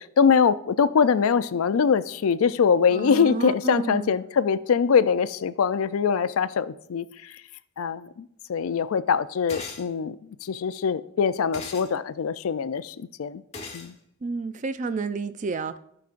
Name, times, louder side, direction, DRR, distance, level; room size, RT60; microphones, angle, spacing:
voice 1, 0.0-7.3 7.8-10.2 10.4-13.4 13.7-13.9, left 6 dB, 80° left, 0.4 m, -23 dB
voice 2, 2.9-4.1 14.2-15.8, right 4 dB, 35° right, 0.4 m, -30 dB
sound 1, 9.5-9.9 11.5-11.9 13.5-13.9, left 4 dB, 30° left, 1.2 m, -38 dB
17.0 x 5.9 x 2.5 m
head